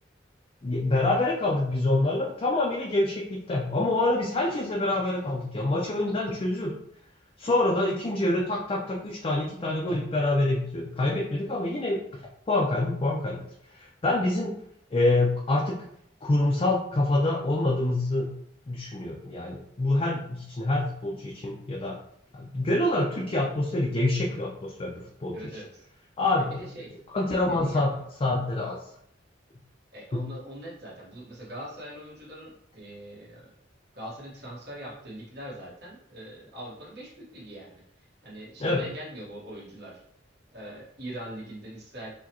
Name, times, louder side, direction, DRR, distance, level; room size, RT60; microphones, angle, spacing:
voice 1, 0.6-6.8 7.4-12.0 12.5-13.4 14.0-14.5 14.9-15.8 16.2-18.3 18.7-22.0 22.3-25.5 26.2-26.6 27.1-28.0 28.2-28.8 30.1-30.3 38.6-38.8, left 2 dB, 30° left, -2 dB, 0.5 m, -26 dB
voice 2, 25.3-25.9 26.4-27.0 27.5-28.0 29.9-33.5 33.9-40.0 40.5-42.1, right 1 dB, 65° right, -6 dB, 1.3 m, -42 dB
4.5 x 2.2 x 2.9 m, 0.71 s
head